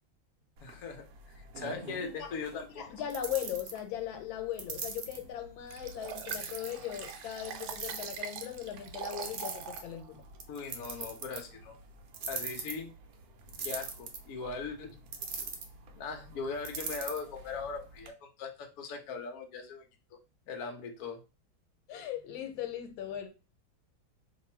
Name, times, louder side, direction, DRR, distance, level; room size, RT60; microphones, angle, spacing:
voice 1, 0.6-2.9 10.5-11.8 12.3-12.9 13.6-14.9 16.0-19.8 20.1-20.2 20.5-21.2, left 5 dB, 60° left, 1.0 m, -40 dB
sound 1, 0.6-18.1, right 5 dB, 65° right, 1.0 m, -44 dB
voice 2, 2.0-2.3 2.8-10.2 21.9-23.3, left 11 dB, 85° left, 1.5 m, -38 dB
Liquid, 5.7-9.9 10.4-10.5, right 7 dB, 80° right, 1.3 m, -43 dB
2.9 x 2.6 x 4.3 m
omnidirectional pair, 2.1 m